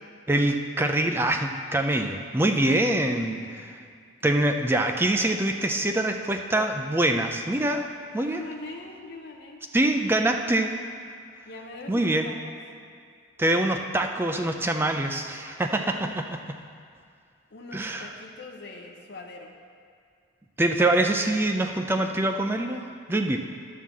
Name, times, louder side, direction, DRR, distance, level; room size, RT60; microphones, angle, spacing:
voice 1, 0.3-3.8 4.2-7.9 8.1-8.4 9.7-10.7 11.9-12.3 13.4-16.4 17.7-18.1 20.6-23.4, right 1 dB, 10° right, 5 dB, 0.3 m, -24 dB
voice 2, 3.2-3.6 8.2-9.6 10.0-10.7 11.5-12.6 15.9-16.2 17.5-19.6, left 2 dB, 55° left, 1 dB, 0.7 m, -43 dB
11.0 x 3.8 x 7.2 m, 2.2 s
head